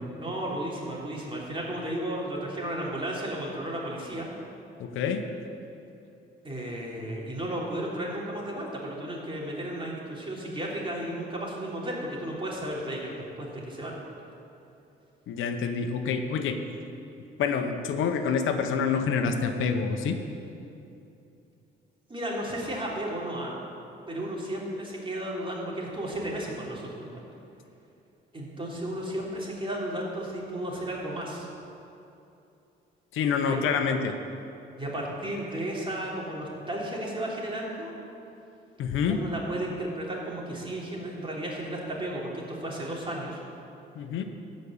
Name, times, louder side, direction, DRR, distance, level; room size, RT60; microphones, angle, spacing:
voice 1, 0.2-4.3 6.4-14.0 22.1-23.6 24.1-27.2 28.3-31.5 33.4-33.7 34.8-37.9 39.1-43.4, right 1 dB, 25° right, -3 dB, 3.2 m, -34 dB
voice 2, 4.8-5.3 15.3-16.6 17.2-20.2 33.1-34.1 38.8-39.2 43.9-44.2, left 6 dB, 85° left, 6 dB, 0.9 m, -27 dB
14.0 x 5.4 x 8.6 m, 2.7 s
cardioid pair, 90°, 20 cm